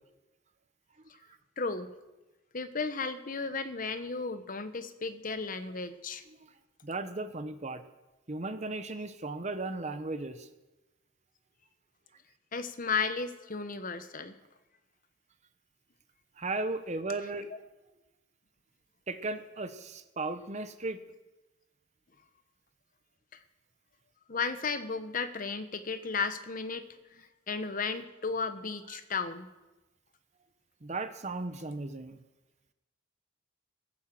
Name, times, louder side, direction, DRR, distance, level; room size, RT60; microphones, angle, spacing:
voice 1, 1.6-1.9 2.5-6.2 12.5-14.3 23.3-23.4 24.3-29.5, left 4 dB, 40° left, 10 dB, 1.0 m, -34 dB
voice 2, 6.8-7.8 8.3-10.5 16.4-17.5 19.1-21.0 28.9-29.0 30.8-32.2, right 2 dB, 35° right, 10 dB, 0.8 m, -36 dB
16.0 x 8.8 x 7.6 m, 1.1 s
head